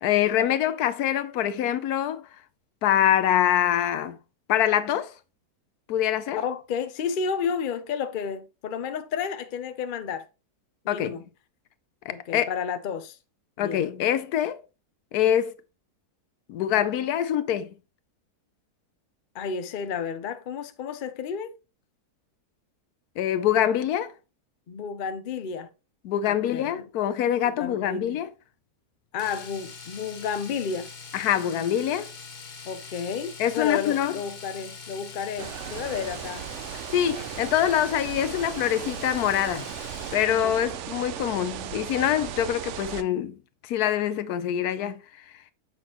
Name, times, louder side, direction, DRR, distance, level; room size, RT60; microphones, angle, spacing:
voice 1, 0.0-2.3 2.8-4.2 4.5-5.1 5.9-6.4 10.9-11.2 12.1-12.5 13.6-14.6 15.1-15.6 16.5-17.7 23.2-24.1 26.0-28.3 31.1-32.1 33.4-34.2 36.9-39.7 40.1-45.0, left 10 dB, 75° left, 1.1 m, -25 dB
voice 2, 6.4-10.3 10.8-11.2 12.1-13.2 13.6-13.8 19.3-21.5 24.7-25.7 26.2-26.8 27.4-28.2 29.1-30.9 32.7-36.5 40.4-40.6, left 6 dB, 60° left, 0.5 m, -31 dB
Domestic sounds home sounds, 29.2-40.4 42.6-42.7 43.0-43.1, left 5 dB, 35° left, 0.8 m, -43 dB
sound 1, 35.4-43.0, right 11 dB, 70° right, 0.7 m, -36 dB
6.9 x 6.0 x 2.9 m
omnidirectional pair, 1.7 m